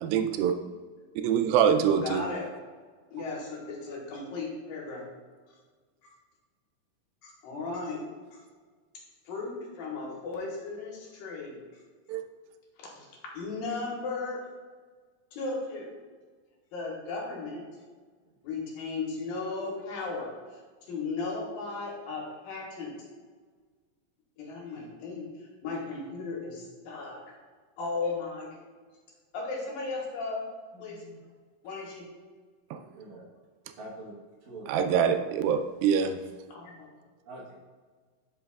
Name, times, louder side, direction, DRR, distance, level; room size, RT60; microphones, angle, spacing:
voice 1, 0.0-0.5 1.2-2.2 12.1-12.2 32.7-32.8 34.7-36.2, right 8 dB, 85° right, 7 dB, 2.3 m, -24 dB
voice 2, 2.0-2.5 3.1-5.0 7.2-8.0 9.3-11.6 12.8-13.1 13.3-14.4 15.3-15.9 16.7-17.6 18.4-20.6 20.9-22.9 24.4-27.2 27.8-28.5 29.3-30.4 30.8-31.0 31.6-32.1 36.5-36.9, left 3 dB, 75° left, -2 dB, 2.9 m, -36 dB
voice 3, 30.7-31.3 32.9-33.3 33.7-34.1 34.4-35.1 37.3-37.6, right 2 dB, 65° right, -4 dB, 2.2 m, -45 dB
11.0 x 5.4 x 2.3 m, 1.5 s
omnidirectional pair, 4.2 m